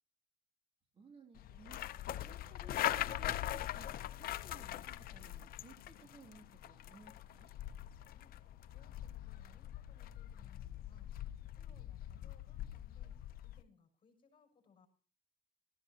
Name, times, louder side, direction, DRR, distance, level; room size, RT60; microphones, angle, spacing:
voice 1, 0.9-1.8 2.2-3.9 4.2-7.5, right 3 dB, 35° right, 3 dB, 2.6 m, -59 dB
sound 1, 1.4-13.6, left 13 dB, 60° left, 0.6 m, -42 dB
voice 2, 8.0-8.4 8.7-11.2 11.5-14.9, left 5 dB, 30° left, 3 dB, 6.2 m, -68 dB
20.0 x 14.5 x 2.8 m, 0.41 s
cardioid pair, 110°, 17 cm